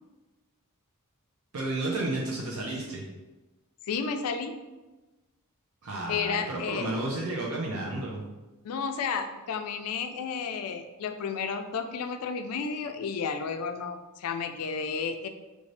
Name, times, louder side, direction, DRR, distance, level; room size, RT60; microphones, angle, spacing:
voice 1, 1.5-3.0 5.8-8.3, right 2 dB, 70° right, -2 dB, 0.7 m, -32 dB
voice 2, 3.8-4.6 6.1-6.9 8.6-15.3, left 5 dB, 70° left, 7 dB, 0.4 m, -32 dB
4.8 x 2.7 x 3.2 m, 1.1 s
head